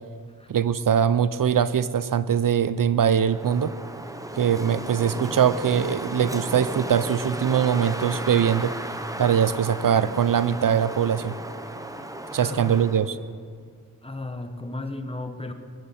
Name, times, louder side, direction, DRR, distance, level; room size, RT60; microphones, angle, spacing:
voice 1, 0.5-3.8 4.4-11.4 12.3-13.2, right 8 dB, 65° right, 15 dB, 0.6 m, -22 dB
Wind, 3.2-13.1, right 1 dB, 10° right, 0.9 m, -35 dB
sound 1, 6.9-13.3, left 1 dB, 45° left, 4.4 m, -51 dB
voice 2, 12.4-12.8 14.0-15.5, left 2 dB, 15° left, 7 dB, 1.2 m, -34 dB
19.5 x 15.5 x 4.2 m, 2.1 s
wide cardioid pair, 110°, 36 cm